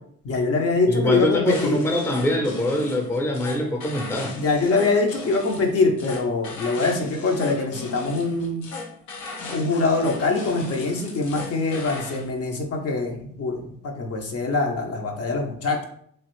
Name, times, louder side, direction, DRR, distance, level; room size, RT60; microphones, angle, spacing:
voice 1, 0.2-1.8 4.4-8.7 9.5-15.8, left 3 dB, 50° left, 2 dB, 0.7 m, -23 dB
voice 2, 0.9-4.3, left 1 dB, 10° left, 2 dB, 0.6 m, -24 dB
sound 1, 1.5-12.3, left 3 dB, 85° left, 0.7 m, -37 dB
3.1 x 2.4 x 3.0 m, 0.65 s
cardioid pair, 90°, 30 cm